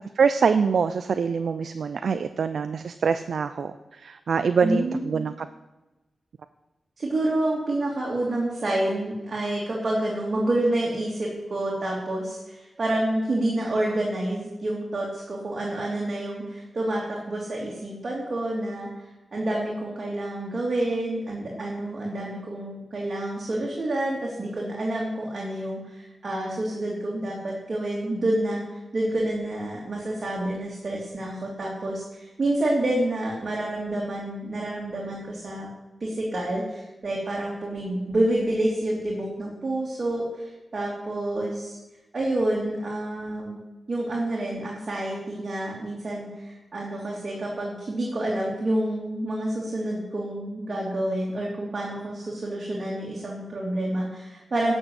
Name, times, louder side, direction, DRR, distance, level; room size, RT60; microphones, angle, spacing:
voice 1, 0.2-5.5, right 6 dB, 75° right, 10 dB, 0.5 m, -24 dB
voice 2, 4.6-5.3 7.0-35.7 36.0-41.8 42.1-43.6 43.9-54.7, right 1 dB, 45° right, -3 dB, 2.7 m, -28 dB
11.0 x 6.3 x 7.8 m, 1.1 s
wide cardioid pair, 85°, 0 cm